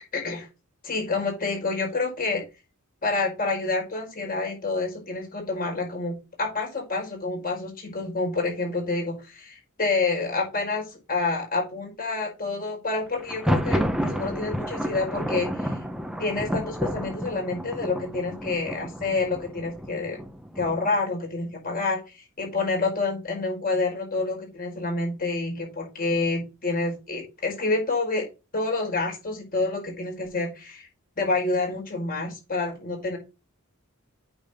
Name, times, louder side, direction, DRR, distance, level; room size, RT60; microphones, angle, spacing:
voice 1, 0.1-0.5 0.8-2.4 3.0-15.8 16.2-20.2 20.5-28.3 28.5-30.9 31.2-33.2, left 3 dB, 45° left, 1 dB, 5.0 m, -28 dB
Thunder, 13.2-21.0, equal, 5° right, 1.1 m, -30 dB
8.6 x 6.4 x 3.7 m, 0.28 s
head